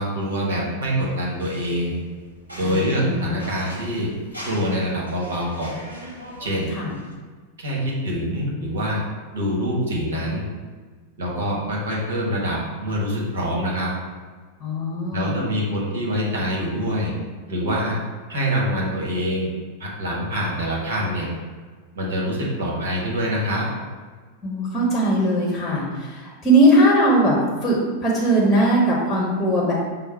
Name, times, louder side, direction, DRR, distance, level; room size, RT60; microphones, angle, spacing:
voice 1, 0.0-1.9 2.6-4.1 4.4-5.7 6.4-6.7 7.6-9.0 9.3-10.4 11.2-13.9 15.1-17.1 17.5-18.0 18.3-19.5 19.8-21.3 21.9-23.6, equal, 65° right, -3 dB, 1.3 m, -25 dB
sound 1, 1.0-7.1, equal, 80° right, 0.9 m, -41 dB
voice 2, 2.6-3.4 6.8-6.9 14.6-15.4 24.4-29.7, right 1 dB, 20° left, -4 dB, 1.0 m, -20 dB
5.4 x 2.0 x 4.5 m, 1.5 s
figure-of-eight pair, 90°, 0 cm